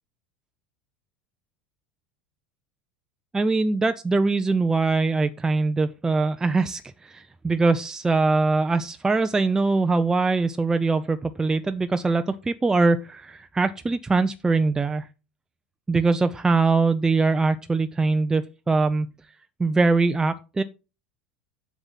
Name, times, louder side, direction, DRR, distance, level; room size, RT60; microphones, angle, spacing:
voice 1, 3.3-15.1 15.9-19.1 19.6-20.6, right 3 dB, 15° right, 9 dB, 0.6 m, -22 dB
8.0 x 7.3 x 5.6 m, 0.31 s
figure-of-eight pair, 75°, 5 cm